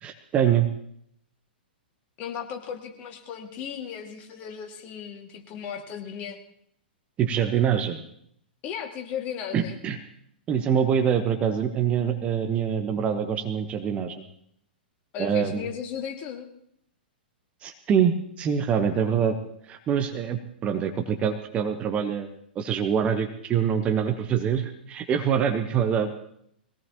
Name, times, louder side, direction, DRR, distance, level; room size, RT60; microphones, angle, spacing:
voice 1, 0.0-0.7 7.2-8.0 9.5-10.0 10.5-14.1 15.2-15.7 17.6-19.3 19.7-22.3 22.5-26.2, right 8 dB, 20° right, 7 dB, 1.1 m, -25 dB
voice 2, 2.2-6.4 8.6-9.8 15.1-16.5, left 8 dB, 30° left, 3 dB, 2.2 m, -36 dB
22.0 x 17.5 x 3.0 m, 0.70 s
figure-of-eight pair, 110°, 6 cm